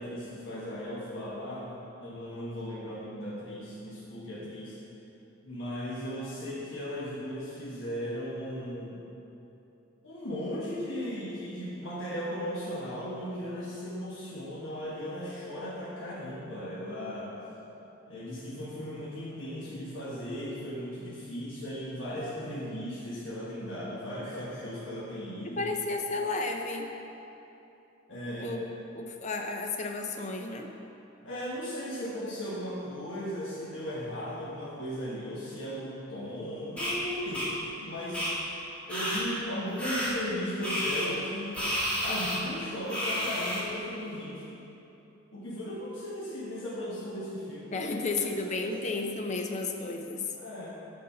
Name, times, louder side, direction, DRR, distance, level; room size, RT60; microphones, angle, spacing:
voice 1, 0.0-1.7 2.0-4.8 5.4-9.0 10.0-17.3 18.1-25.6 28.1-28.5 31.2-37.5 37.8-38.3 38.9-41.7 42.0-44.4 45.3-47.9 48.3-48.7 50.3-50.7, equal, 65° left, -8 dB, 1.2 m, -37 dB
voice 2, 25.4-26.9 28.4-28.6 28.9-30.7 47.7-50.3, left 3 dB, 35° left, 3 dB, 0.6 m, -32 dB
sound 1, 36.8-36.9 37.3-37.5 38.1-38.3 38.9-39.2 39.8-40.1 40.6-41.1 41.5-42.4 42.9-43.6, equal, 5° left, 1.7 m, -30 dB
6.7 x 5.4 x 5.5 m, 2.9 s
head